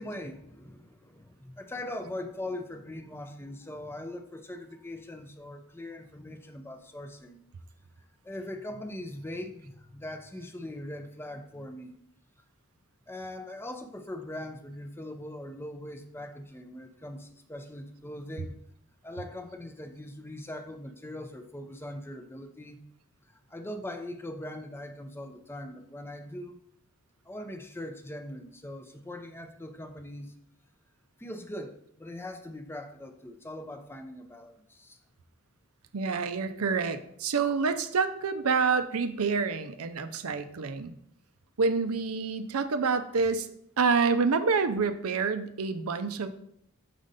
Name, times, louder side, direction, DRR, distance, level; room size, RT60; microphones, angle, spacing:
voice 1, 0.0-7.4 8.0-11.9 13.1-18.6 19.0-22.8 23.3-26.6 27.2-30.4 31.2-35.0, left 1 dB, 10° left, 7 dB, 0.5 m, -41 dB
voice 2, 35.9-40.9 41.6-43.5 43.8-46.3, right 5 dB, 75° right, 10 dB, 0.6 m, -27 dB
6.3 x 5.1 x 4.0 m, 0.70 s
head